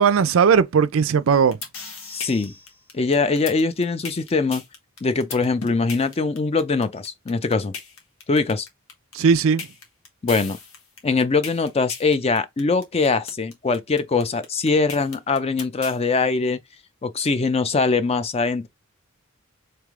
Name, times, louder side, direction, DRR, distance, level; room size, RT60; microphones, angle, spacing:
voice 1, 0.0-1.6 9.1-9.7, right 6 dB, 70° right, 0.4 m, -17 dB
sound 1, 1.3-16.0, left 5 dB, 90° left, 1.3 m, -36 dB
voice 2, 2.1-2.5 2.9-4.6 5.0-7.7 8.3-8.7 10.2-10.6 11.0-16.6 17.0-18.7, left 4 dB, 30° left, 0.4 m, -22 dB
3.4 x 3.2 x 3.6 m
head